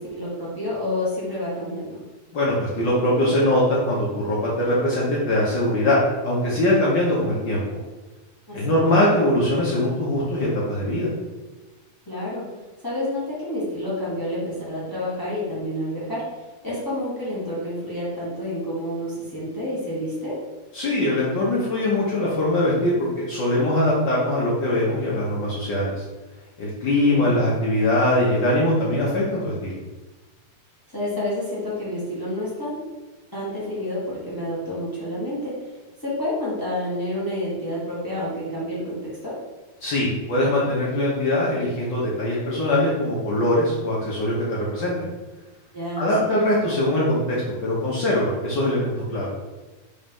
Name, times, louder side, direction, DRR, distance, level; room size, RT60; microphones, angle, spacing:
voice 1, 0.0-2.0 8.5-8.7 12.1-12.5 12.8-16.2 16.6-20.4 27.1-27.4 30.9-32.8 33.3-35.5 36.0-39.4 45.7-46.3, left 1 dB, 30° left, -8 dB, 0.3 m, -29 dB
voice 2, 2.3-7.8 8.5-11.1 20.7-25.9 26.6-29.8 39.8-44.9 46.0-49.3, left 1 dB, 65° left, -6 dB, 1.1 m, -22 dB
4.3 x 4.2 x 5.3 m, 1.2 s
omnidirectional pair, 3.5 m